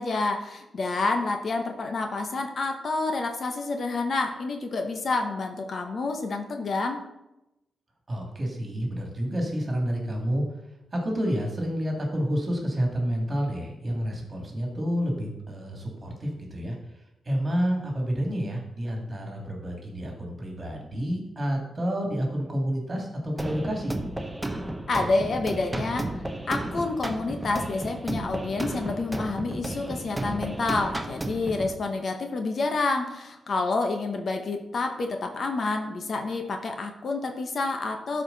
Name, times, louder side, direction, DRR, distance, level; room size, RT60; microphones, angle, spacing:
voice 1, 0.0-7.0 24.9-38.2, left 3 dB, 50° left, 4 dB, 0.9 m, -28 dB
voice 2, 8.1-10.4 10.9-16.8 17.2-24.0, equal, 30° right, 0 dB, 2.3 m, -29 dB
sound 1, 23.4-31.7, right 1 dB, 10° right, 0.6 m, -33 dB
12.0 x 4.8 x 4.0 m, 0.92 s
cardioid pair, 115°, 0 cm